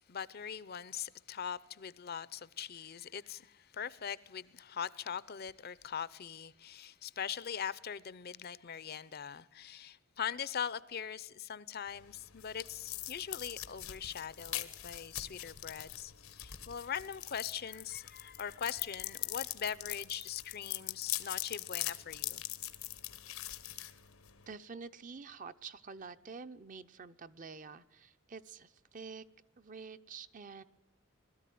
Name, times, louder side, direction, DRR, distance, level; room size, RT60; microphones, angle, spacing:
voice 1, 0.1-22.4, left 8 dB, 50° left, 0.6 m, -41 dB
sound 1, 11.9-24.5, left 14 dB, 90° left, 1.2 m, -42 dB
voice 2, 24.5-29.2 29.6-30.6, right 5 dB, 40° right, 0.6 m, -48 dB
21.0 x 13.5 x 9.3 m
head